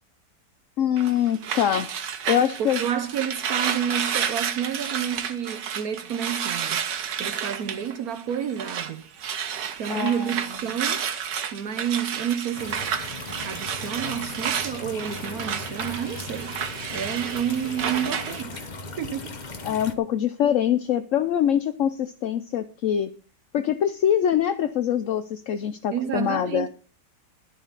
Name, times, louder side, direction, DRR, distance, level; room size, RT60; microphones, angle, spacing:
voice 1, 0.8-1.9 2.3-2.8 9.9-10.3 19.6-23.1 23.5-26.7, left 9 dB, 60° left, 0.9 m, -24 dB
sound 1, 1.0-8.9 9.2-18.4, right 8 dB, 80° right, 1.7 m, -31 dB
voice 2, 2.6-6.8 7.2-9.0 9.8-11.0 11.5-12.9 13.4-16.6 16.9-18.7 19.0-19.4 25.9-26.7, right 9 dB, 65° right, 1.2 m, -30 dB
sound 2, 12.5-19.9, left 3 dB, 30° left, 0.9 m, -38 dB
12.5 x 11.0 x 4.1 m
omnidirectional pair, 1.9 m